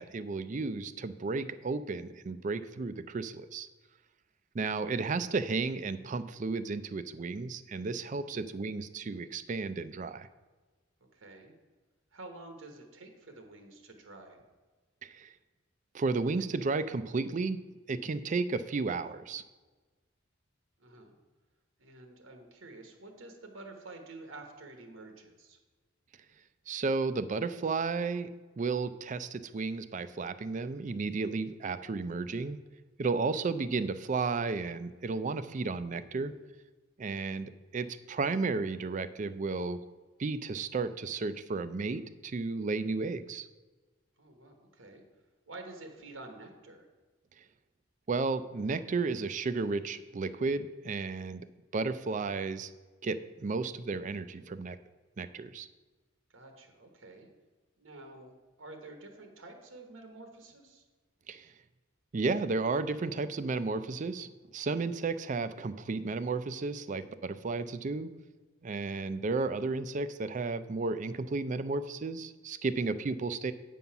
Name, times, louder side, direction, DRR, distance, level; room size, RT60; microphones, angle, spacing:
voice 1, 0.0-3.7 4.5-10.3 15.0-15.3 15.9-17.6 17.9-19.4 26.7-28.3 28.6-32.6 33.0-36.3 37.0-39.8 40.2-43.5 48.1-51.5 51.7-52.7 53.0-54.8 55.2-55.7 61.3-61.5 62.1-68.1 68.6-73.5, right 4 dB, 40° right, 13 dB, 0.4 m, -33 dB
voice 2, 8.1-8.5 11.1-11.5 12.1-14.4 20.8-21.1 21.8-25.6 36.1-36.5 44.2-45.0 45.5-46.9 56.3-57.3 57.8-60.8, right 2 dB, 90° right, 5 dB, 1.2 m, -49 dB
8.4 x 5.4 x 5.8 m, 1.3 s
head